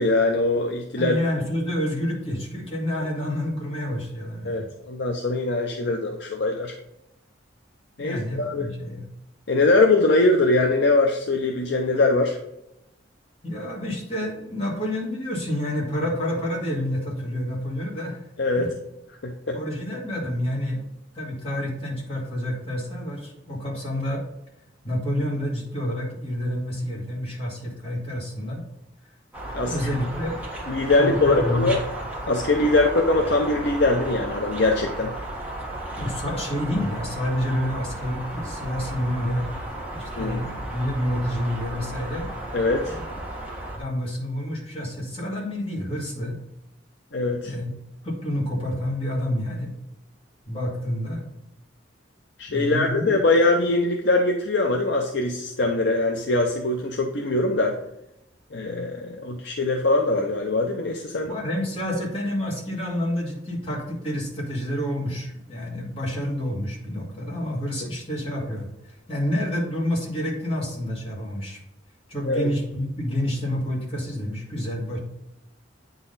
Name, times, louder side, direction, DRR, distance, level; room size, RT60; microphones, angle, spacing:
voice 1, 0.0-1.2 4.4-6.7 8.0-8.7 9.5-12.4 18.4-18.7 19.2-19.6 29.5-29.8 30.7-31.8 32.3-35.2 40.2-40.4 42.5-43.0 47.1-47.5 52.4-57.7 58.5-61.4 72.2-72.5, left 2 dB, 65° left, 2 dB, 0.7 m, -22 dB
voice 2, 1.0-4.7 8.0-9.1 13.4-18.2 18.6-18.7 19.5-20.8 21.1-24.2 24.8-28.6 29.6-30.4 30.9-31.7 36.0-39.5 39.9-42.3 42.9-43.0 43.7-46.4 47.4-47.7 48.0-49.7 50.5-51.3 52.5-53.0 61.2-71.6 72.1-75.0, left 1 dB, 30° left, -3 dB, 2.2 m, -28 dB
sound 1, 29.3-43.8, right 1 dB, 10° right, 1.3 m, -34 dB
8.7 x 4.0 x 4.0 m, 0.86 s
head